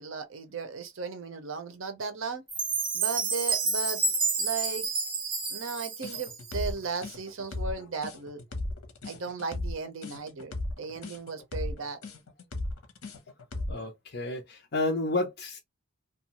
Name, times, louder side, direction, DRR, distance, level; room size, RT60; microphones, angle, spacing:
voice 1, 0.0-2.4 2.9-4.0 4.4-4.9 5.5-8.4 9.0-10.5 10.8-12.0, right 4 dB, 65° right, 0.7 m, -36 dB
Chime, 2.5-6.7, right 4 dB, 25° right, 0.8 m, -29 dB
sound 1, 6.0-13.9, left 2 dB, 85° left, 0.8 m, -36 dB
voice 2, 13.7-15.6, left 2 dB, 50° left, 0.6 m, -31 dB
2.5 x 2.3 x 2.9 m
head